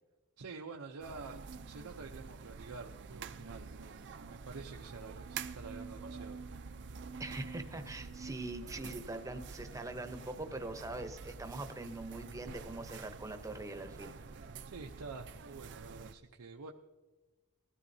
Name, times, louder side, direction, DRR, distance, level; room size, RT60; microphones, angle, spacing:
voice 1, 0.4-1.4 1.6-6.4 14.6-16.7, right 4 dB, 90° right, 2 dB, 0.7 m, -48 dB
sound 1, 1.0-16.1, right 5 dB, 55° right, 0.5 m, -47 dB
voice 2, 7.2-14.1, right 2 dB, 15° right, 7 dB, 0.8 m, -42 dB
19.5 x 13.5 x 2.7 m, 1.2 s
head